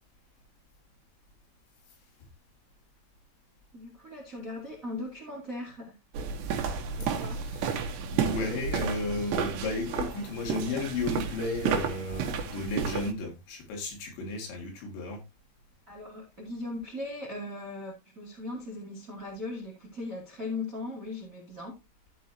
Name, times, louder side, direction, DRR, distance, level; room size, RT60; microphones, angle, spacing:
voice 1, 3.7-5.9 6.9-7.4 15.9-21.8, left 2 dB, 25° right, 2.0 m, -39 dB
sound 1, 6.1-13.1, right 6 dB, 70° right, 3.1 m, -32 dB
voice 2, 7.1-15.2, left 3 dB, 70° left, 4.4 m, -34 dB
15.5 x 5.3 x 2.8 m
omnidirectional pair, 5.5 m